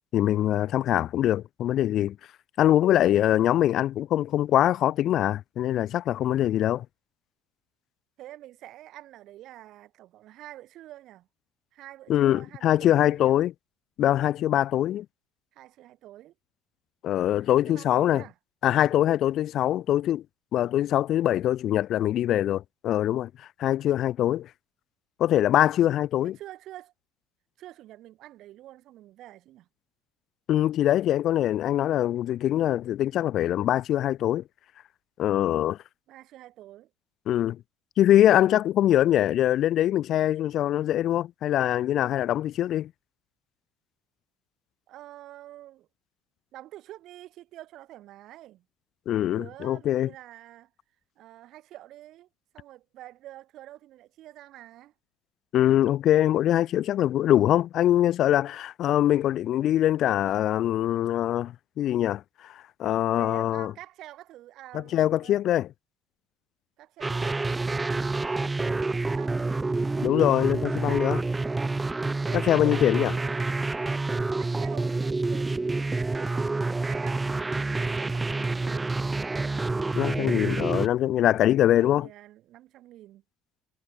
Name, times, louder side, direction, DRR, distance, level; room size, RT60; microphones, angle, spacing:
voice 1, 0.1-2.2 2.6-6.9 12.1-13.5 14.0-15.1 17.0-18.2 18.6-20.2 20.5-23.3 23.6-24.5 25.2-26.4 30.5-34.4 35.2-35.8 37.3-37.6 38.0-42.9 49.1-50.1 55.5-63.7 64.7-65.7 70.0-71.2 72.3-73.1 79.9-82.1, left 12 dB, 55° left, 0.7 m, -23 dB
voice 2, 8.2-11.3 11.7-13.4 15.5-16.3 17.5-18.3 26.2-26.9 27.6-29.7 36.1-36.9 44.9-45.9 46.5-48.6 49.1-50.7 51.2-52.3 52.5-54.9 63.1-65.4 66.8-69.7 72.2-73.9 74.4-77.6 77.9-78.9 81.3-83.2, right 14 dB, 60° right, 3.2 m, -47 dB
sound 1, 67.0-80.9, right 3 dB, 15° right, 0.6 m, -28 dB
supercardioid pair, 105°, 0 cm